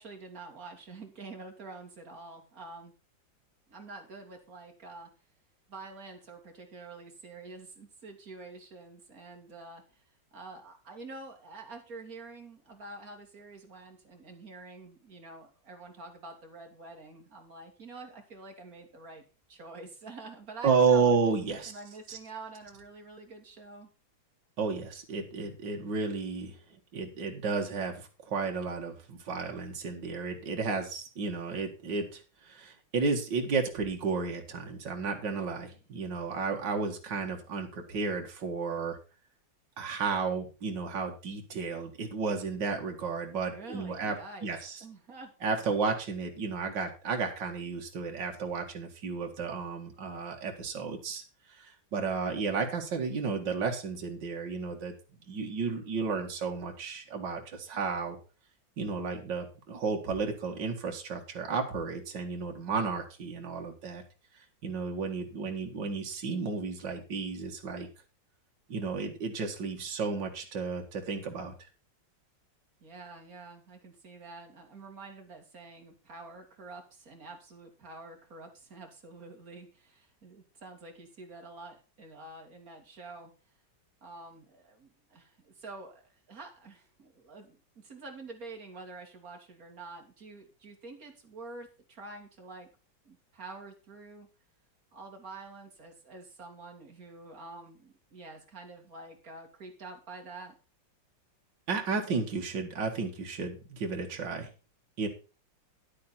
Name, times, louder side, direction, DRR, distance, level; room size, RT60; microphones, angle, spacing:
voice 1, 0.0-2.9 3.7-5.1 5.7-10.0 10.3-19.2 19.5-21.2 21.7-23.9 43.5-44.5 44.8-45.3 72.8-83.3 84.0-92.7 93.0-94.3 94.9-100.6, right 3 dB, 50° right, 3 dB, 2.9 m, -47 dB
voice 2, 20.6-21.8 22.1-22.2 24.6-26.6 26.9-39.0 39.8-44.2 44.4-44.8 45.4-51.2 51.5-54.9 55.3-58.2 58.8-64.0 64.6-67.9 68.7-71.5 101.7-104.5 105.0-105.1, right 4 dB, 70° right, 2 dB, 2.4 m, -32 dB
11.0 x 8.5 x 4.3 m, 0.33 s
omnidirectional pair, 2.1 m